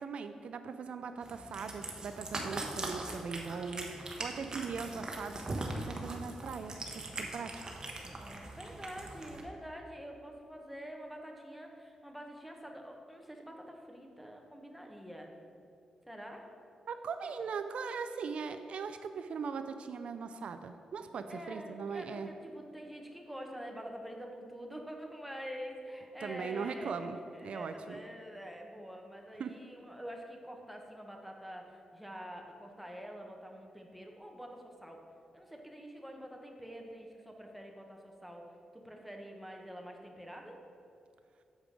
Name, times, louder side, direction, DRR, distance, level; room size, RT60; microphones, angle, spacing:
voice 1, 0.0-7.5 16.9-22.3 26.2-28.0 29.4-29.6, right 5 dB, 70° right, 8 dB, 0.4 m, -40 dB
Cat, 1.2-9.4, right 2 dB, 35° right, 1.1 m, -41 dB
voice 2, 3.3-3.9 7.4-7.8 8.0-15.3 16.1-16.5 17.2-17.3 21.3-35.0 35.3-38.5 38.7-40.6, equal, ahead, 1 dB, 1.1 m, -47 dB
7.4 x 4.8 x 5.2 m, 2.5 s
cardioid pair, 70°, 2 cm